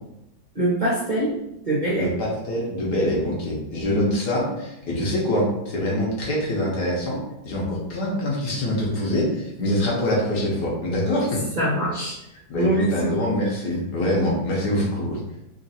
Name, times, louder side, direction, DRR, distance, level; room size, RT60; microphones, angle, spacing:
voice 1, 0.5-1.3 1.6-2.1 9.6-9.7 11.6-12.2 12.5-13.1, right 1 dB, 55° right, -6 dB, 0.5 m, -23 dB
voice 2, 2.0-11.4 12.5-15.2, left 1 dB, 60° left, -4 dB, 1.5 m, -24 dB
3.6 x 2.6 x 4.1 m, 0.86 s
omnidirectional pair, 2.1 m